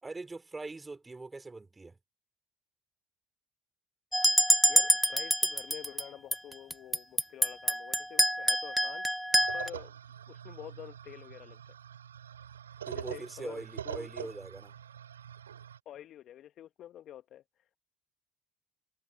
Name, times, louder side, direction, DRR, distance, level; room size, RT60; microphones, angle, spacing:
voice 1, 0.0-2.0 12.9-14.7, right 3 dB, 20° right, 3.7 m, -42 dB
sound 1, 4.1-6.0 6.3-9.7, equal, ahead, 0.3 m, -26 dB
voice 2, 4.7-9.0 9.5-9.9 10.3-11.6 12.9-14.1 15.8-17.8, left 11 dB, 55° left, 1.4 m, -48 dB
sound 2, 9.3-15.8, right 9 dB, 90° right, 3.5 m, -44 dB
hypercardioid pair, 60°, 0 cm